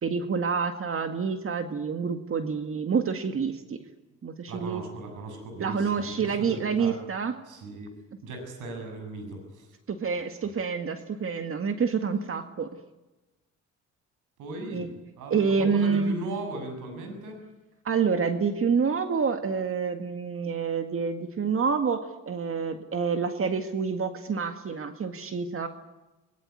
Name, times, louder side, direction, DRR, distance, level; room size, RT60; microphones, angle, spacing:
voice 1, 0.0-3.8 4.2-4.8 5.6-7.4 9.9-12.7 14.7-14.9 15.3-16.1 17.8-25.7, right 5 dB, 45° right, 7 dB, 2.0 m, -27 dB
voice 2, 4.5-7.0 7.5-7.9 8.2-9.7 14.4-14.9 15.2-17.4, right 2 dB, 85° right, 5 dB, 7.7 m, -38 dB
22.0 x 21.5 x 9.7 m, 1.1 s
cardioid pair, 90°, 30 cm